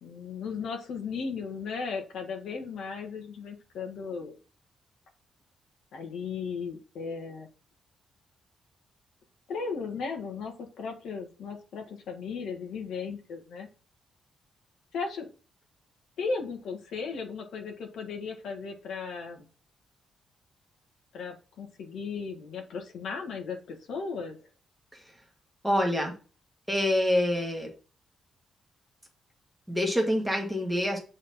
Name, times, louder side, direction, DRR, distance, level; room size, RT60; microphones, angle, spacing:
voice 1, 0.0-4.3 5.9-7.5 9.5-13.7 14.9-15.3 16.2-19.5 21.1-24.4, left 5 dB, 65° left, 3 dB, 1.7 m, -36 dB
voice 2, 25.6-26.1 26.7-27.7 29.7-31.0, left 1 dB, ahead, 0 dB, 1.5 m, -26 dB
7.9 x 3.9 x 4.2 m, 0.35 s
wide cardioid pair, 180°, 0 cm